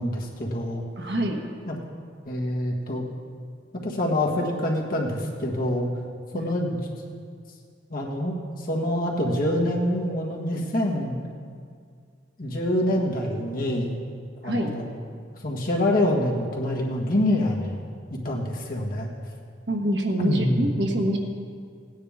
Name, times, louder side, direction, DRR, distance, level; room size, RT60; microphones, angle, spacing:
voice 1, 0.0-0.8 1.6-1.8 2.3-3.0 3.8-5.9 6.3-6.8 7.9-11.2 12.4-13.9 14.4-14.9 15.4-17.8 18.1-19.1 20.2-20.7, left 1 dB, 50° left, -2 dB, 1.6 m, -26 dB
voice 2, 1.0-1.4 6.3-6.5 14.5-14.7 19.7-21.2, right 1 dB, 65° right, 2 dB, 1.3 m, -25 dB
17.0 x 9.6 x 3.6 m, 2.1 s
head